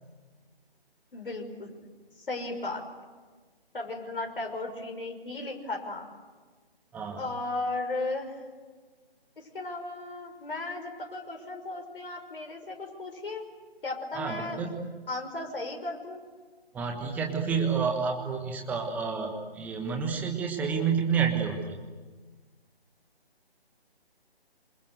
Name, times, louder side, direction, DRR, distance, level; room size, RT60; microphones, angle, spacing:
voice 1, 1.1-1.7 2.3-2.8 3.7-6.1 7.2-8.4 9.4-13.4 13.8-14.6 15.1-16.2, left 2 dB, 60° left, 3 dB, 5.9 m, -35 dB
voice 2, 6.9-7.2 14.1-14.8 16.7-21.6, right 6 dB, 5° right, 2 dB, 1.3 m, -29 dB
27.5 x 26.5 x 8.0 m, 1.4 s
figure-of-eight pair, 150°, 31 cm